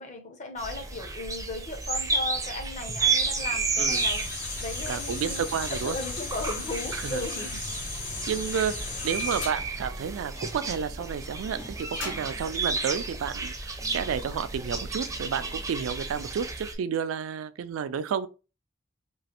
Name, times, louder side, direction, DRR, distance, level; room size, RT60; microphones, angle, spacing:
voice 1, 0.0-4.3 4.6-5.4 5.7-7.6, left 2 dB, 35° left, 0.6 m, -36 dB
sound 1, 0.6-16.7, right 4 dB, 15° right, 0.4 m, -32 dB
sound 2, 3.9-9.5, left 3 dB, 85° left, 1.8 m, -36 dB
voice 2, 4.9-6.0 6.9-7.2 8.3-18.3, right 7 dB, 90° right, 0.3 m, -31 dB
sound 3, 9.4-13.7, left 2 dB, 65° left, 1.0 m, -43 dB
3.0 x 2.4 x 2.8 m
head